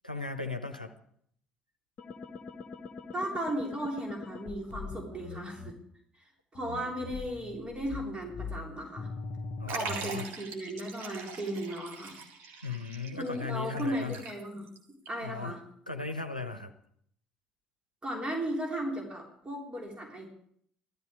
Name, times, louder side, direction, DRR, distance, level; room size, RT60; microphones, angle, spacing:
voice 1, 0.0-0.9 9.6-10.3 12.6-14.2 15.2-15.6 15.9-16.7, left 4 dB, 90° left, 6 dB, 0.8 m, -37 dB
sound 1, 2.0-5.7 6.5-10.1, left 4 dB, 40° left, 1.0 m, -42 dB
voice 2, 3.1-5.7 6.2-9.1 9.7-12.2 13.2-14.7 15.1-15.6 18.0-20.3, right 1 dB, 25° right, 0 dB, 3.6 m, -36 dB
Liquid, 9.7-14.8 15.1-15.2 16.1-16.2, right 5 dB, 60° right, 2.1 m, -42 dB
15.5 x 13.5 x 4.9 m, 0.68 s
figure-of-eight pair, 50°, 4 cm